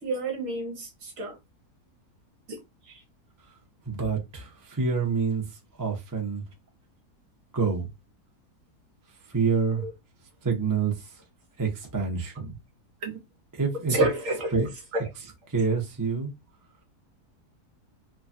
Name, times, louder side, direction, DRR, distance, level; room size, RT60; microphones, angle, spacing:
voice 1, 0.0-1.4 9.8-9.9 13.0-13.1 13.9-14.5 14.9-15.0, right 2 dB, 60° right, 1.2 m, -28 dB
voice 2, 3.9-5.4 5.8-6.4 7.5-7.9 9.3-9.8 10.4-10.9 11.6-12.5 13.6-13.9 14.5-14.7 15.5-16.3, right 5 dB, 25° right, 0.4 m, -27 dB
3.1 x 2.3 x 2.5 m
omnidirectional pair, 1.7 m